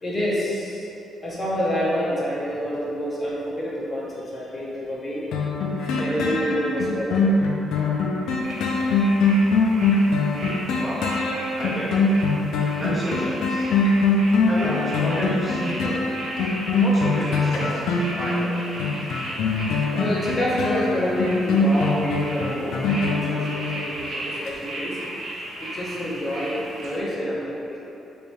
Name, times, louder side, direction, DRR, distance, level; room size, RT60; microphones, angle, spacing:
voice 1, 0.0-0.9 1.2-5.3 6.0-7.4 9.4-9.7 19.9-25.0 25.6-27.8, equal, 35° left, -7 dB, 0.9 m, -28 dB
sound 1, 5.3-24.0 24.5-24.6, left 3 dB, 80° left, 0.4 m, -23 dB
sound 2, 8.4-27.0, right 1 dB, 60° right, 0.9 m, -36 dB
voice 2, 11.5-11.9 12.8-13.7 14.5-16.1 16.8-17.8 18.2-18.5, equal, 5° right, -8 dB, 0.7 m, -30 dB
3.2 x 2.3 x 4.1 m, 2.8 s
cardioid pair, 90°, 0 cm